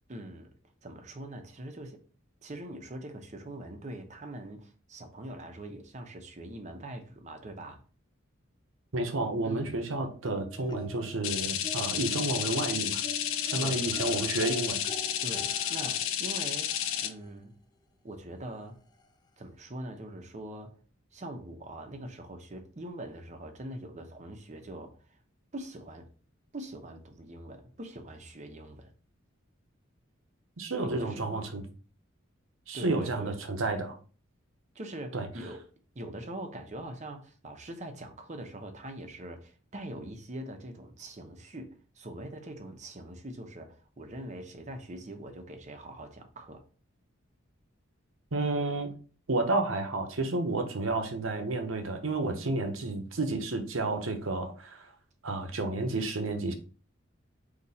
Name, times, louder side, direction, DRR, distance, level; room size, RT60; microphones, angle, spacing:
voice 1, 0.1-0.5 0.8-2.0 2.4-7.8 9.4-9.8 13.3-13.8 15.2-16.7 17.0-17.5 18.0-18.8 19.4-20.7 21.1-25.2 25.5-26.1 26.5-28.9 30.8-31.5 32.7-33.4 34.7-35.6 35.9-46.6, right 1 dB, 35° right, 0.7 m, -43 dB
voice 2, 8.9-13.0 13.5-14.8 30.6-31.6 32.7-33.9 35.1-35.3 48.3-48.9 49.3-54.9 55.2-56.5, right 2 dB, 75° right, 0.9 m, -31 dB
sound 1, 10.2-11.2 11.6-17.3 18.5-18.6 19.0-19.1, left 2 dB, 20° left, 0.3 m, -45 dB
sound 2, 11.2-17.1, left 10 dB, 75° left, 0.5 m, -31 dB
4.2 x 2.9 x 4.1 m
head